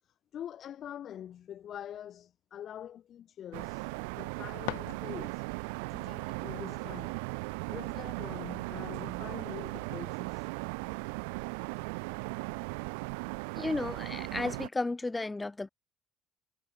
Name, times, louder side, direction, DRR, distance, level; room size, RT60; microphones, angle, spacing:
voice 1, 0.0-3.9 4.2-5.5 5.9-7.2 7.7-10.5, left 10 dB, 55° left, 3.6 m, -45 dB
sound 1, 3.5-14.7, right 32 dB, 85° right, 0.8 m, -37 dB
sound 2, 4.1-5.6, left 27 dB, 85° left, 2.5 m, -42 dB
voice 2, 13.6-15.7, left 2 dB, 15° left, 1.1 m, -33 dB
supercardioid pair, 75°, 0 cm